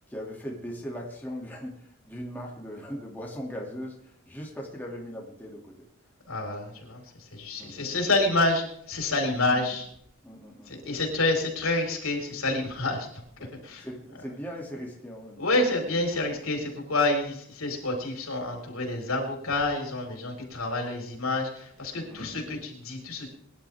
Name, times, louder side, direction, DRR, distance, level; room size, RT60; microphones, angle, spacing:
voice 1, 0.1-5.9 7.6-7.8 10.2-10.8 13.4-15.4 21.9-22.4, equal, 10° left, -2 dB, 2.7 m, -39 dB
voice 2, 6.3-9.9 10.7-13.1 13.6-13.9 15.4-23.3, left 2 dB, 80° left, 1 dB, 4.9 m, -28 dB
22.5 x 12.0 x 3.6 m, 0.69 s
head